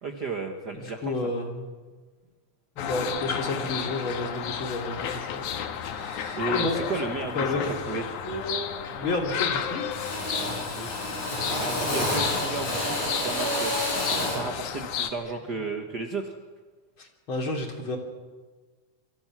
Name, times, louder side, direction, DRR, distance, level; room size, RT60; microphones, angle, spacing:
voice 1, 0.0-1.3 6.3-8.1 10.7-10.9 11.5-16.4, right 3 dB, 45° right, 4 dB, 1.6 m, -34 dB
voice 2, 0.8-1.7 2.8-5.5 5.8-7.0 7.3-7.9 9.0-9.9 17.0-18.0, left 2 dB, 45° left, 3 dB, 3.5 m, -31 dB
sound 1, 2.8-15.1, left 8 dB, 90° left, 2.9 m, -33 dB
Drill, 7.6-7.8 8.2-8.7 9.0-9.6 9.9-14.5, left 1 dB, 70° left, 8.3 m, -30 dB
27.0 x 24.5 x 6.1 m, 1.4 s
omnidirectional pair, 3.4 m